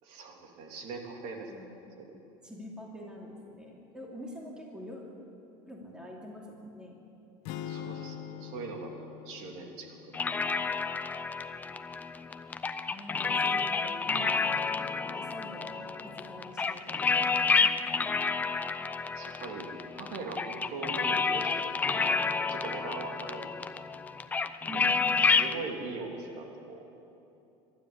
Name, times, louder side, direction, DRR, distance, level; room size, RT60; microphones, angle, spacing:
voice 1, 0.0-1.5 2.0-2.1 7.7-8.9 9.2-10.4 13.8-13.9 19.1-23.5 25.2-26.9, right 3 dB, 60° right, 2 dB, 3.0 m, -41 dB
voice 2, 1.5-1.9 2.4-5.0 5.7-7.0 12.9-17.1 17.6-18.2 24.6-25.1, equal, 5° right, -2 dB, 2.8 m, -45 dB
sound 1, 7.5-11.6, left 10 dB, 65° left, 1.1 m, -44 dB
sound 2, 10.1-25.6, left 4 dB, 15° left, 0.4 m, -30 dB
24.5 x 12.5 x 9.8 m, 2.9 s
cardioid pair, 165°, 13 cm